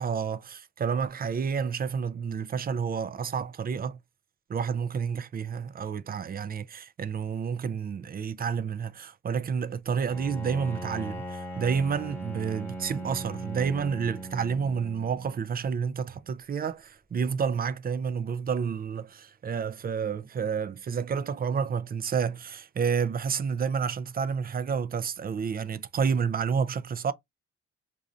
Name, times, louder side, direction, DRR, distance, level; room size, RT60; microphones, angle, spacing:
voice 1, 0.0-4.0 4.5-27.1, right 6 dB, 30° right, 0.4 m, -30 dB
Bowed string instrument, 10.1-15.4, right 1 dB, 5° left, 1.1 m, -39 dB
2.6 x 2.5 x 4.2 m
cardioid pair, 90°, 30 cm